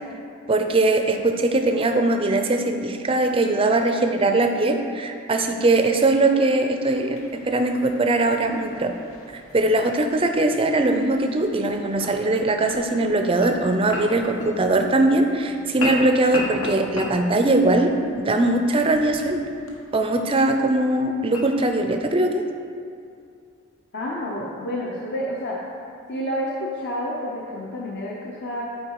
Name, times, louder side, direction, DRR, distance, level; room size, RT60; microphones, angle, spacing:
voice 1, 0.5-8.9 9.3-19.4 19.9-22.4, right 2 dB, 25° right, 5 dB, 0.4 m, -21 dB
sound 1, 6.8-22.0, left 1 dB, 75° left, 1.1 m, -37 dB
voice 2, 23.9-25.6 26.1-28.6, equal, 50° left, -4 dB, 0.7 m, -29 dB
8.8 x 4.5 x 4.7 m, 2.4 s
head